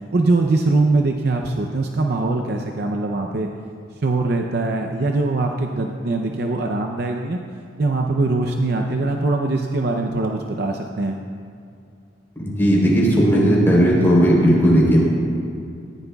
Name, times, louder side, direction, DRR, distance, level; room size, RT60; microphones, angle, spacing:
voice 1, 0.1-3.5 4.0-7.4 7.8-11.2, right 2 dB, 55° right, 3 dB, 0.6 m, -22 dB
voice 2, 12.4-15.0, equal, 15° left, -5 dB, 3.5 m, -15 dB
18.5 x 15.0 x 2.3 m, 2.4 s
head